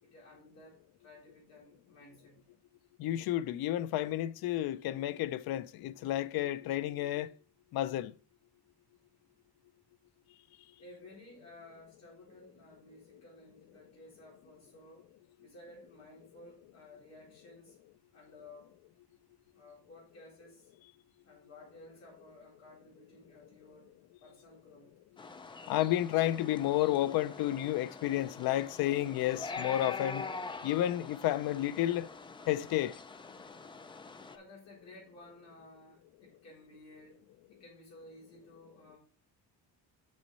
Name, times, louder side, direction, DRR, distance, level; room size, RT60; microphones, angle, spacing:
voice 1, 0.0-2.4 10.8-15.1 15.4-17.8 18.1-18.7 19.5-20.7 21.2-23.9 24.2-24.9 34.3-39.0, left 2 dB, 40° left, 4.2 m, -55 dB
voice 2, 3.0-7.3 7.7-8.1 25.7-30.3 30.6-32.1 32.5-32.9, left 13 dB, 65° left, 0.5 m, -31 dB
sound 1, 25.2-34.4, left 4 dB, 15° left, 0.3 m, -44 dB
6.4 x 6.2 x 4.1 m
cardioid pair, 170°, 39 cm